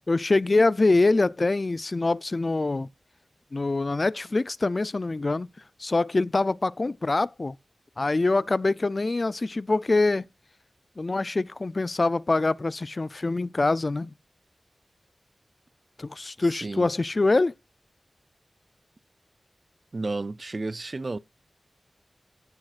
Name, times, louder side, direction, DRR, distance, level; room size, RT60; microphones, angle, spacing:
voice 1, 0.1-2.9 3.5-5.5 5.8-7.6 8.0-10.2 11.0-14.1 16.0-17.5, left 3 dB, 45° left, 0.4 m, -24 dB
voice 2, 16.4-16.9 19.9-21.2, right 3 dB, 45° right, 0.4 m, -32 dB
15.5 x 6.3 x 2.4 m
wide cardioid pair, 80°, 0 cm